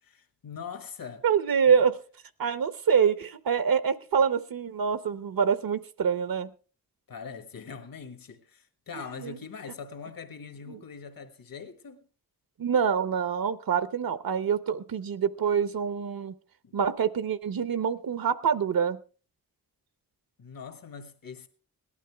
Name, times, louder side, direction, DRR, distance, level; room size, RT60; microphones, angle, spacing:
voice 1, 0.0-1.3 1.7-1.9 7.1-12.0 16.6-16.8 20.4-21.5, left 6 dB, 80° left, 1.5 m, -42 dB
voice 2, 1.2-1.9 2.4-6.5 9.2-9.4 10.7-10.8 12.6-16.3 16.7-19.0, right 7 dB, 85° right, 0.9 m, -26 dB
18.0 x 12.0 x 3.4 m
wide cardioid pair, 95°, 34 cm